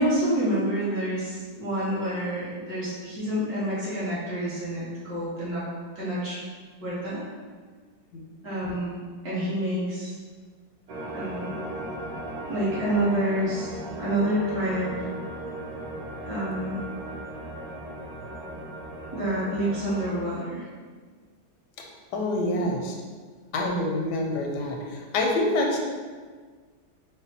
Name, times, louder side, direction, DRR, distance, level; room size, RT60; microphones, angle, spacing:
voice 1, 0.0-5.7 6.0-6.4 6.8-7.2 8.4-10.1 11.1-11.6 12.5-15.1 16.3-16.8 19.1-20.7 22.6-22.7, right 1 dB, 60° right, -10 dB, 1.9 m, -28 dB
sound 1, 10.9-20.2, right 1 dB, 90° right, 1.5 m, -37 dB
voice 2, 22.1-22.9 23.5-25.8, left 1 dB, 85° left, 0 dB, 1.2 m, -26 dB
4.1 x 2.1 x 4.1 m, 1.5 s
omnidirectional pair, 1.8 m